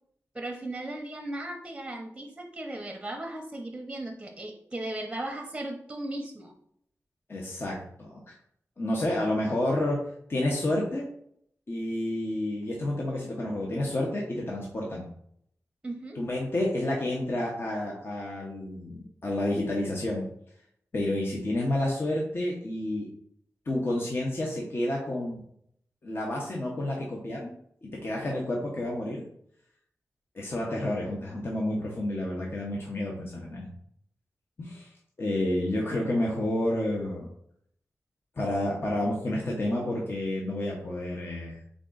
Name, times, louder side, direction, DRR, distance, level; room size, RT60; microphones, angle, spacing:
voice 1, 0.3-6.5 15.8-16.2, right 1 dB, 15° right, 2 dB, 0.7 m, -37 dB
voice 2, 7.3-8.2 8.8-10.0 10.3-11.0 11.7-15.0 16.2-20.3 20.9-23.1 23.7-25.4 26.0-27.5 27.8-29.2 30.3-33.7 34.6-34.9 35.2-37.3 38.4-41.6, left 1 dB, 45° left, -2 dB, 0.9 m, -30 dB
3.7 x 3.7 x 3.8 m, 0.68 s
wide cardioid pair, 110°, 6 cm